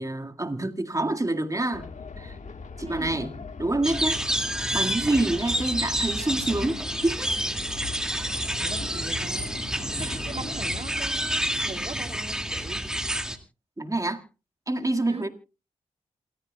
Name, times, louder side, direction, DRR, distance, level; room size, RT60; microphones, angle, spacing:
voice 1, 0.0-1.9 2.2-2.4 2.8-3.3 3.6-4.2 4.7-7.3 10.0-10.2 13.8-14.2 14.7-15.3, right 2 dB, 25° right, 1.9 m, -27 dB
sound 1, 1.7-10.8, left 5 dB, 60° left, 1.5 m, -40 dB
voice 2, 2.8-3.3 8.1-8.2 8.6-9.5 9.8-12.8 15.1-15.3, right 3 dB, 45° right, 2.9 m, -40 dB
sound 2, 3.8-13.4, equal, 5° right, 2.2 m, -29 dB
27.5 x 14.0 x 2.3 m
cardioid pair, 45°, 14 cm